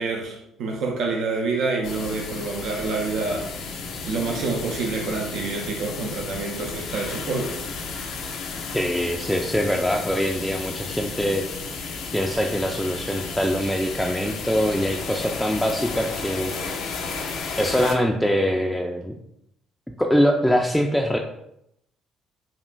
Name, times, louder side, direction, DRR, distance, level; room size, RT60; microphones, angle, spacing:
voice 1, 0.0-7.6, right 3 dB, 60° right, 1 dB, 0.5 m, -27 dB
sound 1, 1.8-18.0, left 4 dB, 65° left, 0.5 m, -33 dB
voice 2, 8.7-11.4 12.1-16.5 17.6-19.1 20.0-21.2, equal, 5° left, 1 dB, 0.4 m, -23 dB
5.2 x 2.4 x 2.2 m, 0.79 s
hypercardioid pair, 50°, 0 cm